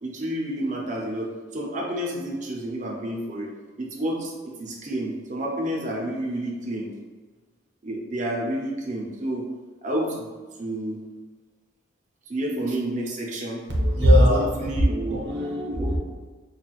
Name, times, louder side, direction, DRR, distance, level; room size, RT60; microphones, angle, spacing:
voice 1, 0.0-3.5 3.8-6.9 7.8-9.4 9.8-10.3 10.6-11.0 12.3-13.6 14.3-15.2 15.7-16.0, right 1 dB, 40° right, -1 dB, 0.6 m, -30 dB
voice 2, 13.7-14.8 15.2-16.0, equal, 65° right, -3 dB, 0.9 m, -20 dB
5.7 x 2.3 x 2.4 m, 1.4 s
head